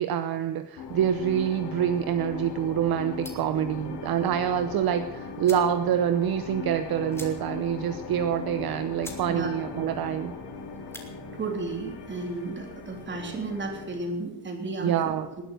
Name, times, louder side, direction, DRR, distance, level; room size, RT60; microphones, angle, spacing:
voice 1, 0.0-10.3 14.8-15.3, right 9 dB, 55° right, 10 dB, 0.9 m, -26 dB
sound 1, 0.8-14.1, left 5 dB, 75° left, 3.3 m, -39 dB
sound 2, 3.2-3.6 4.9-5.0 5.4-5.8 6.1-6.2 6.5-6.6 7.1-7.7 8.1-8.2 8.6-8.7 9.0-9.3 9.6-10.0 10.7-11.1, left 1 dB, 5° left, 2.4 m, -44 dB
voice 2, 11.3-14.9, right 3 dB, 25° right, 2 dB, 3.3 m, -33 dB
19.5 x 11.0 x 6.5 m, 1.1 s
cardioid pair, 170°, 42 cm